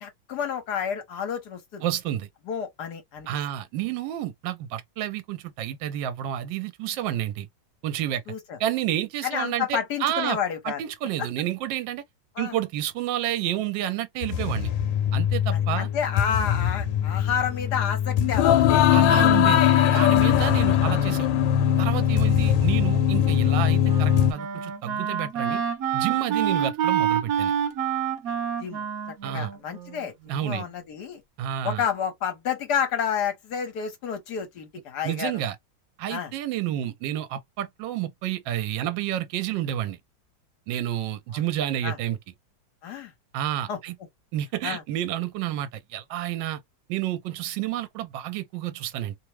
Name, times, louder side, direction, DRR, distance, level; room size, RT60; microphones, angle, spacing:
voice 1, 0.0-1.8 2.5-3.3 8.3-8.6 9.2-10.8 11.2-11.3 12.4-12.6 15.5-19.0 20.8-21.1 28.6-28.9 29.3-31.2 31.6-35.4 36.1-36.3 41.3-41.4 41.8-42.0 42.8-43.1 43.7-43.8 44.6-44.8, left 7 dB, 65° left, 1.3 m, -30 dB
voice 2, 1.8-2.3 3.3-7.5 7.8-8.2 8.6-10.4 10.6-12.0 12.4-14.7 15.1-15.9 18.9-19.6 19.9-21.3 21.8-25.6 25.9-27.5 29.2-29.5 30.3-30.7 31.4-31.8 35.0-35.6 36.0-40.0 40.7-42.2 43.3-43.9 44.3-46.6 46.9-49.2, right 12 dB, 80° right, 1.2 m, -30 dB
sound 1, 14.2-24.3, left 10 dB, 90° left, 1.3 m, -21 dB
Wind instrument woodwind instrument, 23.4-30.6, right 9 dB, 60° right, 1.1 m, -28 dB
3.1 x 2.0 x 3.0 m
omnidirectional pair, 2.0 m